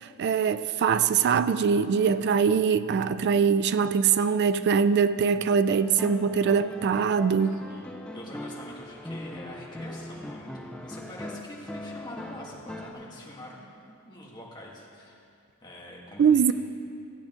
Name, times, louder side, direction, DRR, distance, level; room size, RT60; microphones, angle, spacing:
voice 1, 0.2-7.6 16.2-16.5, right 6 dB, 50° right, 14 dB, 0.3 m, -22 dB
sound 1, 5.7-12.9, left 1 dB, 5° left, 0.5 m, -40 dB
voice 2, 7.4-15.2 15.6-16.5, left 1 dB, 20° left, -4 dB, 1.6 m, -45 dB
14.5 x 8.6 x 3.7 m, 2.4 s
head